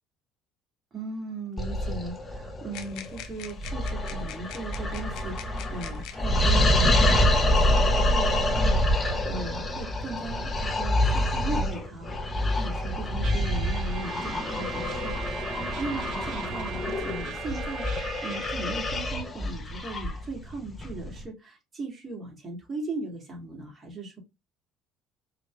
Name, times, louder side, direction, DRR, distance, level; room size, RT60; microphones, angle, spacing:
voice 1, 0.9-17.8 18.2-24.2, right 3 dB, 35° right, 2.4 m, -38 dB
sound 1, 1.6-21.2, left 1 dB, 30° left, 1.1 m, -26 dB
sound 2, 2.7-6.3 7.3-7.4 8.2-8.9, left 10 dB, 70° left, 0.6 m, -44 dB
Trumpet, 13.2-18.6, right 10 dB, 60° right, 0.6 m, -40 dB
5.0 x 2.9 x 2.4 m
hypercardioid pair, 65°, 0 cm